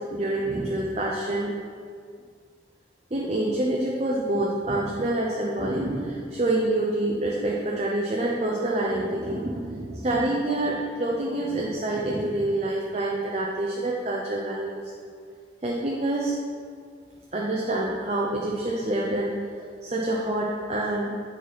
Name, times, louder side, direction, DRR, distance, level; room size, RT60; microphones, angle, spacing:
voice 1, 0.0-1.5 3.1-14.8 15.6-16.3 17.3-21.1, right 1 dB, 35° right, -2 dB, 0.6 m, -27 dB
8.4 x 4.3 x 4.2 m, 2.1 s
head